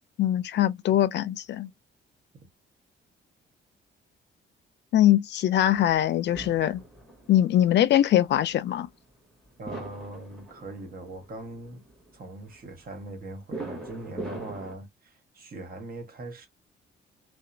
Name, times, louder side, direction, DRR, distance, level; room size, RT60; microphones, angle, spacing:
voice 1, 0.2-1.7 4.9-6.8 7.3-8.9, left 12 dB, 65° left, 0.4 m, -22 dB
sound 1, 5.7-14.8, right 2 dB, ahead, 1.5 m, -42 dB
voice 2, 9.6-11.8 12.1-16.5, right 2 dB, 45° right, 1.4 m, -41 dB
2.8 x 2.2 x 2.6 m
cardioid pair, 90°, 20 cm